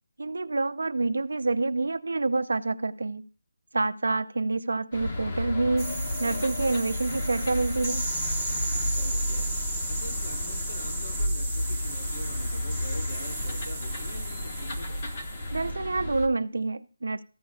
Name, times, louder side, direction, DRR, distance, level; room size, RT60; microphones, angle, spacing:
voice 1, 0.2-3.2 3.7-8.0 15.5-17.2, right 3 dB, 75° right, 0.6 m, -27 dB
sound 1, 4.9-16.3, left 1 dB, 35° left, 1.1 m, -32 dB
sound 2, 5.8-15.6, right 1 dB, 10° left, 1.4 m, -35 dB
voice 2, 8.8-9.5 9.9-15.0, equal, 80° left, 4.4 m, -44 dB
14.0 x 8.1 x 2.4 m
figure-of-eight pair, 170°, 0 cm